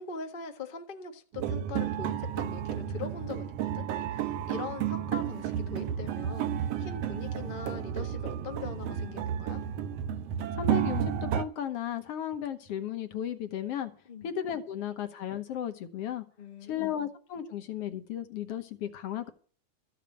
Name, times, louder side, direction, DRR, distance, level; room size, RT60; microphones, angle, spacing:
voice 1, 0.0-9.6 14.1-14.3 16.4-16.9, left 5 dB, 45° left, 0.6 m, -42 dB
sound 1, 1.3-11.4, right 9 dB, 70° right, 1.7 m, -32 dB
voice 2, 10.5-13.9 14.2-16.2 16.6-19.3, left 9 dB, 60° left, 1.8 m, -35 dB
14.0 x 7.0 x 7.6 m
omnidirectional pair, 3.4 m